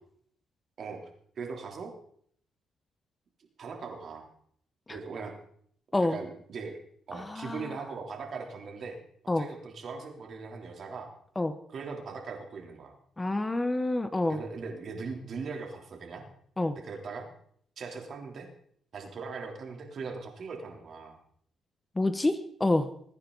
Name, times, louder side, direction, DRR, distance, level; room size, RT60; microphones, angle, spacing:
voice 1, 0.8-1.1 1.3-1.9 3.6-4.2 4.9-5.3 6.0-6.8 7.1-9.0 9.2-11.1 11.7-12.9 14.3-16.3 16.7-17.3 17.8-18.5 18.9-21.2, right 4 dB, 55° right, 2 dB, 3.3 m, -40 dB
voice 2, 7.1-7.7 9.3-9.5 11.4-11.6 13.2-14.4 16.6-16.8 22.0-22.9, left 2 dB, 15° left, 11 dB, 1.0 m, -28 dB
21.5 x 9.6 x 4.0 m, 0.63 s
cardioid pair, 90°, 0 cm